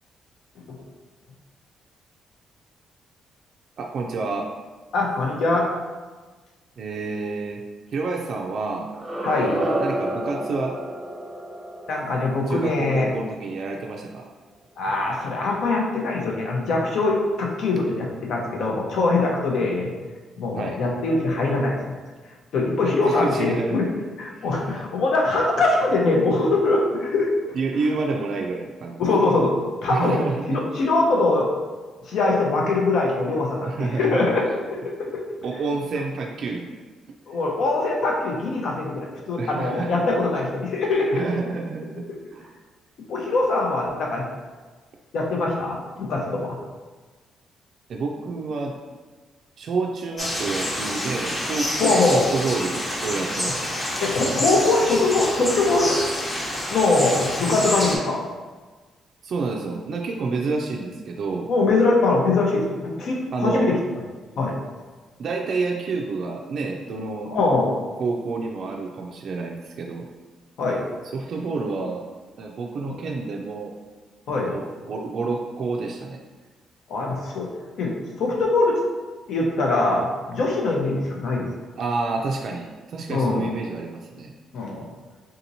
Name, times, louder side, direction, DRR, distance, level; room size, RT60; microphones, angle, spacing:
voice 1, 3.8-4.5 6.8-7.6 7.9-8.9 9.4-10.8 12.5-14.2 20.6-20.8 22.8-23.8 24.3-24.5 27.5-29.0 29.9-30.7 33.6-34.3 35.4-36.7 39.4-39.9 41.1-42.0 42.3-42.5 47.9-48.8 49.6-53.7 59.2-61.5 63.3-63.8 65.2-67.3 68.0-70.1 71.0-72.0 72.4-73.7 74.3-76.2 81.8-84.3, right 3 dB, 60° right, 0 dB, 0.3 m, -29 dB
voice 2, 4.9-5.7 9.2-9.6 11.9-13.1 14.8-19.9 20.4-21.9 22.5-23.9 24.2-27.3 29.0-29.5 29.8-30.2 30.5-31.5 32.0-34.4 35.0-35.2 37.3-41.2 43.1-44.2 45.1-46.6 51.8-52.3 54.0-56.0 56.7-58.2 61.5-63.8 64.4-64.5 67.3-67.7 70.6-70.8 72.9-73.0 74.3-74.6 76.9-77.5 77.8-77.9 78.2-78.8 79.3-81.5 83.1-83.5 84.5-84.9, left 3 dB, 70° left, -1 dB, 0.7 m, -22 dB
sound 1, 8.9-13.8, right 1 dB, 20° right, 0.6 m, -30 dB
sound 2, 50.2-58.0, left 1 dB, 25° left, 0.8 m, -28 dB
3.7 x 2.8 x 2.6 m, 1.3 s
cardioid pair, 90°, 0 cm